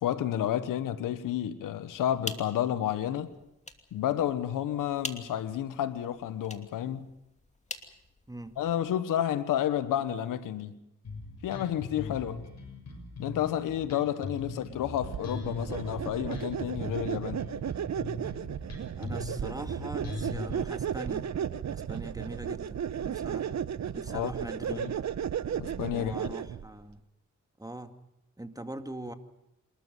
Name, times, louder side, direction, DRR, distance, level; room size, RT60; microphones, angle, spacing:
voice 1, 0.0-3.3 3.9-7.1 8.6-10.8 11.4-12.4 13.2-17.4 24.1-24.3 24.7-24.9 25.6-26.3, left 11 dB, 90° left, 1.2 m, -31 dB
sound 1, 1.9-8.8, left 2 dB, 20° left, 2.7 m, -45 dB
Bass guitar, 11.0-20.6, left 3 dB, 55° left, 6.7 m, -40 dB
sound 2, 15.0-26.7, right 9 dB, 60° right, 1.0 m, -34 dB
voice 2, 19.0-21.3 21.7-23.6 23.9-24.9 25.9-27.0 27.6-27.9 28.4-29.1, right 1 dB, 10° right, 2.2 m, -42 dB
27.5 x 13.5 x 9.4 m
supercardioid pair, 55°, 31 cm